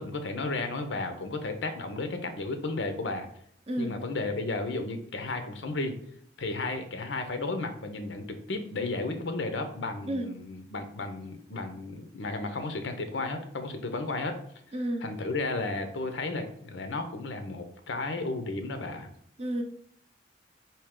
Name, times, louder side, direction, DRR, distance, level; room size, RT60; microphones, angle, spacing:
voice 1, 0.0-3.3 3.8-5.9 6.4-14.3 15.0-19.1, left 3 dB, 90° left, 7 dB, 0.7 m, -33 dB
voice 2, 14.7-15.2 19.4-19.6, right 1 dB, 35° right, 5 dB, 0.5 m, -31 dB
4.5 x 2.8 x 3.6 m, 0.67 s
head